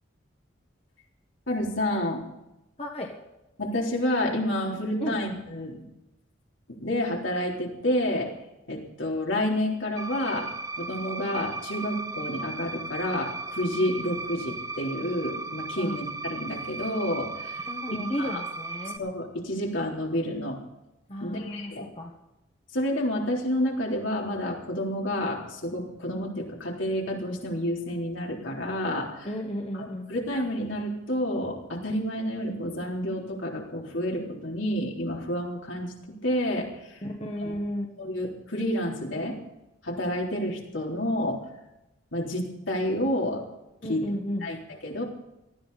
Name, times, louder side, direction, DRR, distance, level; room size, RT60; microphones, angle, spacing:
voice 1, 1.5-2.2 3.6-5.8 6.7-8.3 8.7-10.5 10.8-17.6 18.2-18.4 19.0-20.6 21.2-21.8 22.7-29.3 29.7-35.9 36.2-37.0 37.4-37.5 38.0-39.4 39.8-41.4 42.1-43.4 43.9-44.0 44.4-44.6 44.8-45.0, left 1 dB, 75° left, -1 dB, 3.8 m, -29 dB
voice 2, 2.8-3.1 5.0-5.2 15.8-15.9 17.6-19.0 21.1-22.1 29.2-30.1 37.0-37.9 43.8-44.5, equal, 30° left, 1 dB, 1.5 m, -33 dB
sound 1, 10.0-19.0, right 3 dB, 15° right, 0.6 m, -36 dB
19.0 x 14.0 x 4.2 m, 0.92 s
head